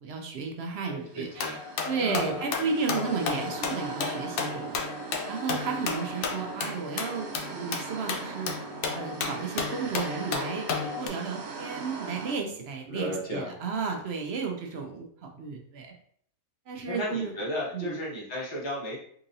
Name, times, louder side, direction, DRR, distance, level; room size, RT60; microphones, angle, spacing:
voice 1, 0.0-1.6 1.8-4.8 5.3-8.6 8.9-10.7 11.0-15.9 16.7-17.3 17.7-18.0, right 5 dB, 65° right, 2 dB, 0.6 m, -33 dB
voice 2, 0.9-1.6 2.0-2.4 12.9-13.5 16.9-19.0, left 1 dB, 30° left, -5 dB, 0.5 m, -34 dB
sound 1, 1.1-12.3, right 5 dB, 85° right, 1.2 m, -40 dB
sound 2, 1.4-11.1, left 5 dB, 75° left, 1.0 m, -33 dB
3.8 x 2.8 x 2.6 m, 0.62 s
omnidirectional pair, 1.5 m